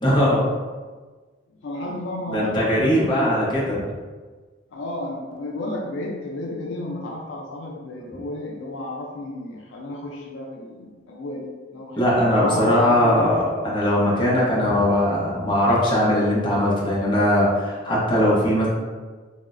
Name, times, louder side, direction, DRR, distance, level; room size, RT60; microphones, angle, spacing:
voice 1, 0.0-0.4 2.3-3.8 12.0-18.7, left 1 dB, 25° left, -6 dB, 0.7 m, -20 dB
voice 2, 1.6-3.4 4.7-13.2, left 1 dB, 90° left, 0 dB, 0.4 m, -33 dB
3.0 x 2.0 x 2.4 m, 1.4 s
head